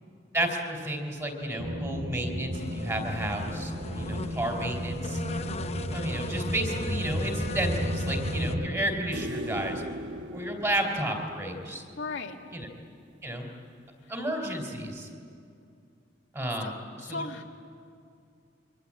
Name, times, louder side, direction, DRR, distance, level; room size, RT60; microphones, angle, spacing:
voice 1, 0.3-5.2 5.9-9.8 10.3-11.8 12.5-12.7 13.2-13.5 14.1-15.1 16.3-16.7, right 1 dB, 15° right, 3 dB, 3.8 m, -32 dB
sound 1, 1.6-8.7, equal, 85° right, 2.6 m, -32 dB
sound 2, 2.5-8.6, left 2 dB, 35° left, 1.0 m, -40 dB
sound 3, 9.1-12.4 15.0-15.1, equal, 65° right, 1.3 m, -38 dB
voice 2, 12.0-12.4 14.0-14.1 16.6-16.7 17.0-17.4, left 3 dB, 85° left, 1 dB, 2.2 m, -36 dB
27.5 x 24.5 x 8.6 m, 2.4 s
head